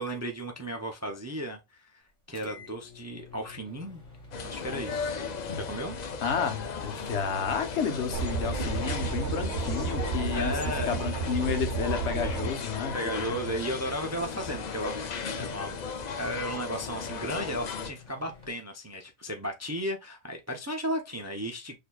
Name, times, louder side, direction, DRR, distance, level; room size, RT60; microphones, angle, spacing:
voice 1, 0.0-2.0 2.3-4.0 4.4-5.1 5.6-6.0 10.3-10.9 12.9-15.8 16.2-21.8, equal, 25° right, 0.3 m, -35 dB
sound 1, 2.3-18.5, left 5 dB, 30° left, 1.4 m, -51 dB
sound 2, 4.3-17.9, left 5 dB, 50° left, 0.5 m, -36 dB
voice 2, 6.2-12.9, left 6 dB, 80° left, 1.2 m, -31 dB
sound 3, 8.1-12.5, right 5 dB, 80° right, 1.0 m, -32 dB
6.5 x 2.8 x 2.2 m
omnidirectional pair, 1.2 m